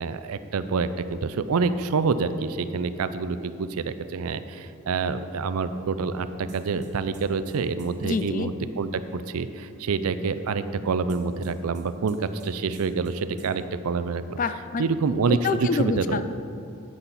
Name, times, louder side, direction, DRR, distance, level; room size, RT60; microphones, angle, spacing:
voice 1, 0.0-12.2 12.4-14.4 14.8-16.2, right 4 dB, 85° right, 12 dB, 0.5 m, -27 dB
sound 1, 6.5-8.2 11.1-12.5 12.7-13.1 13.4-13.5, equal, 35° right, 1.2 m, -44 dB
voice 2, 8.0-8.5 14.4-14.8 15.3-16.2, left 4 dB, 35° left, 11 dB, 0.3 m, -27 dB
9.9 x 8.7 x 4.1 m, 2.5 s
head